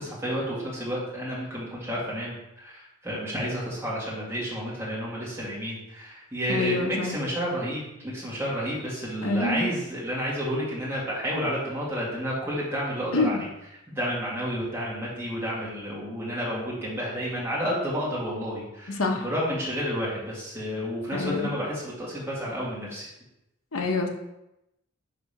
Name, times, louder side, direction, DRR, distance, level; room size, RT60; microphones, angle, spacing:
voice 1, 0.0-13.4 13.9-23.1, equal, 10° right, -7 dB, 2.0 m, -31 dB
voice 2, 6.5-7.2 9.2-9.7 13.1-13.4 19.0-19.2 21.1-21.5 23.7-24.1, left 3 dB, 75° left, 2 dB, 0.9 m, -26 dB
5.0 x 3.6 x 5.7 m, 0.88 s
head